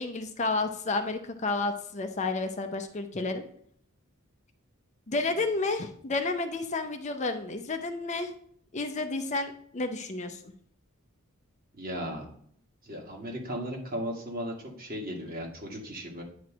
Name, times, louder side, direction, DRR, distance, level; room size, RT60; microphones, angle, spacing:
voice 1, 0.0-3.4 5.1-8.3 8.7-10.4, left 3 dB, 35° left, 6 dB, 0.6 m, -31 dB
voice 2, 11.7-12.3 12.8-16.2, equal, 45° right, -1 dB, 1.9 m, -36 dB
9.3 x 3.1 x 6.1 m, 0.62 s
head